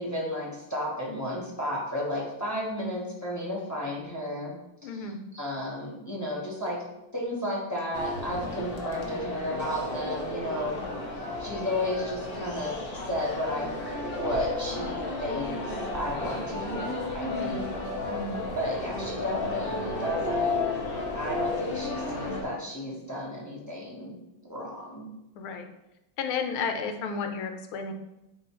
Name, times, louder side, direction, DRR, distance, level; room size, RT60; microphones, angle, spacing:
voice 1, 0.0-4.6 4.8-6.8 7.1-10.8 11.4-13.7 14.1-17.7 18.5-20.6 21.1-24.2 24.5-25.1, left 1 dB, 10° left, -5 dB, 0.9 m, -33 dB
voice 2, 4.8-5.2 17.2-17.6 18.1-18.4 25.4-25.7 26.2-27.9, left 5 dB, 90° left, 6 dB, 1.6 m, -32 dB
sound 1, 7.9-22.4, left 2 dB, 55° left, 0.6 m, -33 dB
8.7 x 3.5 x 3.1 m, 0.93 s
omnidirectional pair, 2.3 m